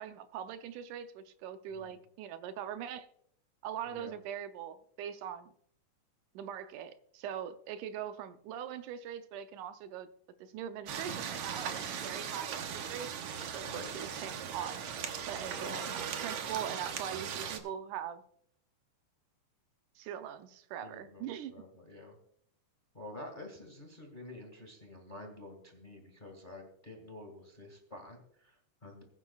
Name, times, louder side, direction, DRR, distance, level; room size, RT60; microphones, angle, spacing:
voice 1, 0.0-3.1 3.6-5.5 6.4-10.1 10.4-13.2 13.5-14.8 15.3-18.2 20.0-21.5, right 9 dB, 80° right, 2.2 m, -42 dB
voice 2, 1.7-2.0 3.8-4.2 13.6-14.0 15.4-15.9 20.8-22.1 22.9-29.0, left 1 dB, 20° left, 1.3 m, -49 dB
sound 1, 10.9-17.6, right 7 dB, 65° right, 1.6 m, -39 dB
21.0 x 9.7 x 2.3 m
omnidirectional pair, 3.6 m